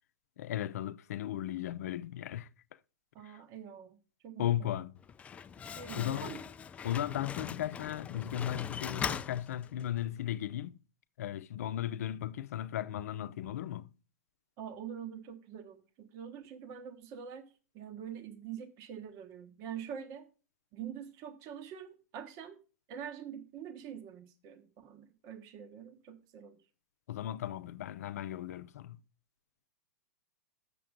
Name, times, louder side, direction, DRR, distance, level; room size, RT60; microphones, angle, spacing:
voice 1, 0.4-2.5 3.2-3.4 4.4-5.0 6.0-6.3 6.8-10.8 11.2-13.9 27.1-29.0, left 12 dB, 65° left, 0.6 m, -36 dB
voice 2, 3.1-4.0 4.2-4.8 5.7-6.4 14.6-20.3 20.7-22.6 22.9-26.6, right 8 dB, 40° right, 1.2 m, -45 dB
Slam, 5.0-10.1, left 7 dB, 15° left, 0.3 m, -41 dB
7.6 x 6.8 x 5.1 m
hypercardioid pair, 125°, 9 cm